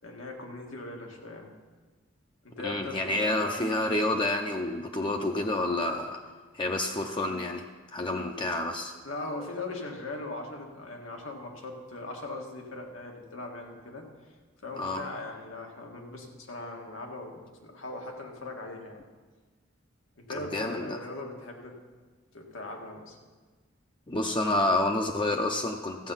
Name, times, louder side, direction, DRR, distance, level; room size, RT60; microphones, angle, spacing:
voice 1, 0.0-1.5 2.4-3.6 9.0-14.1 14.6-19.0 20.2-21.7 22.3-23.2, left 2 dB, 90° left, 1 dB, 1.9 m, -40 dB
voice 2, 2.6-6.2 6.5-7.6 7.9-8.9 14.8-15.0 20.5-21.0 24.1-26.1, left 2 dB, 25° left, 3 dB, 0.6 m, -29 dB
14.0 x 7.9 x 5.7 m, 1.4 s
head